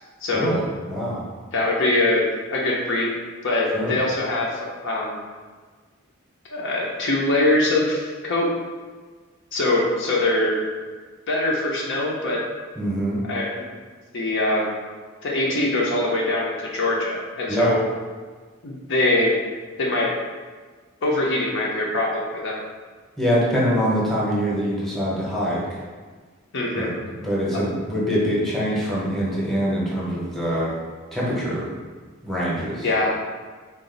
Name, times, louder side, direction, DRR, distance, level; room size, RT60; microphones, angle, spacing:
voice 1, 0.2-0.5 1.5-2.2 2.5-3.1 3.4-5.2 6.5-8.5 9.5-10.6 11.3-12.4 13.2-13.7 14.1-14.7 15.2-17.8 18.6-19.4 19.8-20.1 21.0-22.6 26.5-26.9 32.8-33.1, left 2 dB, 60° left, -3 dB, 0.6 m, -23 dB
voice 2, 0.9-1.2 3.7-4.0 12.8-13.2 17.5-17.7 23.2-25.6 26.7-30.7 31.1-31.7 32.2-32.9, equal, ahead, -7 dB, 0.8 m, -24 dB
3.9 x 2.5 x 3.8 m, 1.5 s
head